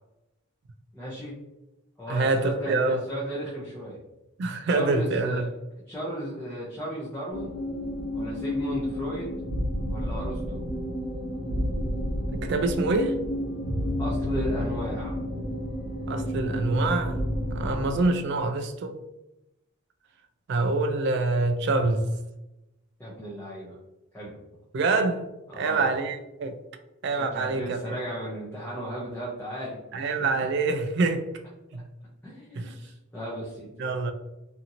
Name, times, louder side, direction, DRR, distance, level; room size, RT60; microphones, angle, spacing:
voice 1, 0.9-1.4 2.0-4.0 4.7-5.4 5.9-7.5 8.1-9.3 9.9-10.6 14.0-15.2 23.0-23.8 24.1-24.4 25.5-25.9 27.1-30.3 31.7-31.8 32.2-33.7, equal, 10° left, 0.5 m, -35 dB
voice 2, 2.1-3.0 4.4-5.5 12.3-13.1 16.1-17.2 17.5-19.0 20.5-22.1 24.7-25.3 25.6-26.6 27.0-27.8 29.9-31.3 31.7-31.8 32.5-32.7 33.8-34.1, right 3 dB, 55° right, 0.3 m, -25 dB
sound 1, 7.3-18.1, equal, 90° left, 0.8 m, -30 dB
2.8 x 2.6 x 2.5 m
head